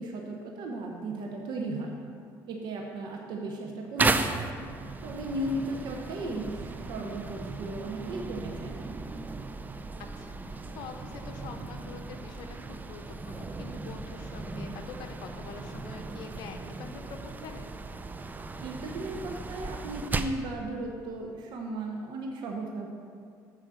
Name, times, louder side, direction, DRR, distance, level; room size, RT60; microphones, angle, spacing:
voice 1, 0.0-2.0 2.5-4.5 5.0-8.8 18.6-22.9, right 2 dB, 65° right, 1 dB, 0.9 m, -36 dB
sound 1, 4.0-20.5, right 3 dB, 20° right, 0.5 m, -36 dB
voice 2, 5.4-5.7 10.2-17.7, left 5 dB, 70° left, 4 dB, 0.7 m, -45 dB
7.6 x 5.0 x 6.7 m, 2.3 s
supercardioid pair, 90°, 8 cm